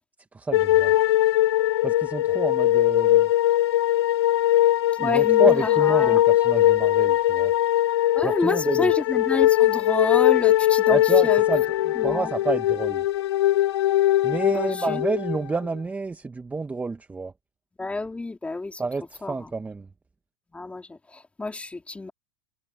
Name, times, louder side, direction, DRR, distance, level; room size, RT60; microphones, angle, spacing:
voice 1, 0.3-0.9 1.8-3.3 5.0-7.5 8.2-8.9 10.9-13.0 14.2-17.3 18.8-19.9, right 4 dB, 10° right, 1.4 m, -29 dB
sound 1, 0.5-15.7, left 14 dB, 70° left, 2.5 m, -20 dB
voice 2, 5.0-6.2 8.2-11.4 12.1-12.3 14.5-15.0 17.8-18.8 19.2-19.3 20.5-22.1, left 3 dB, 10° left, 3.7 m, -29 dB
hypercardioid pair, 110°, 14 cm